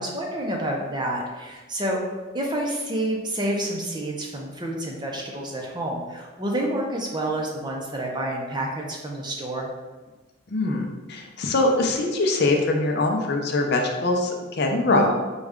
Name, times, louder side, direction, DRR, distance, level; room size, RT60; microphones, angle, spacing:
voice 1, 0.0-2.0 2.3-9.7 14.9-15.0, right 1 dB, 20° right, 0 dB, 0.6 m, -29 dB
voice 2, 10.5-15.1, left 2 dB, 55° left, 2 dB, 0.5 m, -23 dB
5.3 x 2.3 x 3.6 m, 1.3 s
head